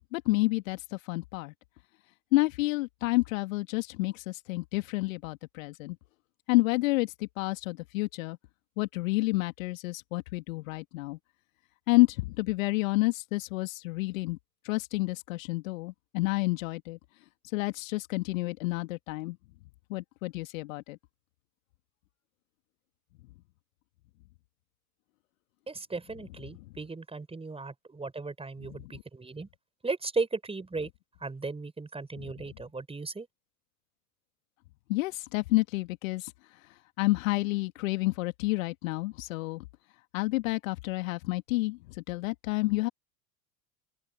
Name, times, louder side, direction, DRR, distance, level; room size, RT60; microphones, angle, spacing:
voice 1, 0.1-1.5 2.3-6.0 6.5-8.4 8.8-11.2 11.9-14.4 14.6-17.0 17.5-19.4 19.9-21.0 28.6-28.9 32.2-32.3 34.9-36.3 37.0-39.6 40.1-42.9, left 21 dB, 60° left, 2.2 m, -29 dB
voice 2, 25.7-29.5 29.8-30.9 31.2-33.3, right 3 dB, 10° right, 5.1 m, -36 dB
open air
figure-of-eight pair, 80°, 46 cm